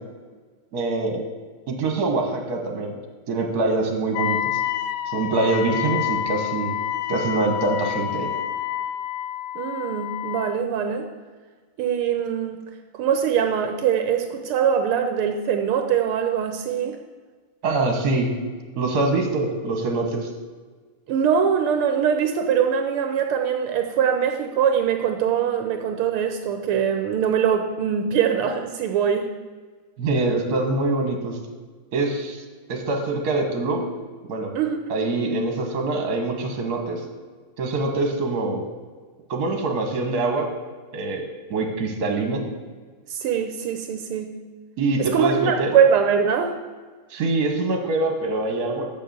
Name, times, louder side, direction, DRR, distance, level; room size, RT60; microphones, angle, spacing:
voice 1, 0.7-1.2 1.7-2.9 3.3-4.6 5.1-6.8 7.1-8.3 17.6-18.3 18.8-20.3 30.0-31.4 31.9-32.4 32.7-33.8 34.2-34.5 34.9-37.0 37.6-38.6 39.3-40.5 40.9-41.2 41.5-42.4 44.8-45.7 47.1-48.9, right 3 dB, 50° right, 3 dB, 1.8 m, -24 dB
Wind instrument woodwind instrument, 4.1-10.6, left 11 dB, 85° left, 1.5 m, -28 dB
voice 2, 9.6-11.1 11.8-12.6 12.9-17.0 21.1-29.3 34.6-34.8 43.1-44.3 45.0-46.6, right 7 dB, 80° right, 5 dB, 1.6 m, -22 dB
7.0 x 6.6 x 7.9 m, 1.4 s
omnidirectional pair, 2.4 m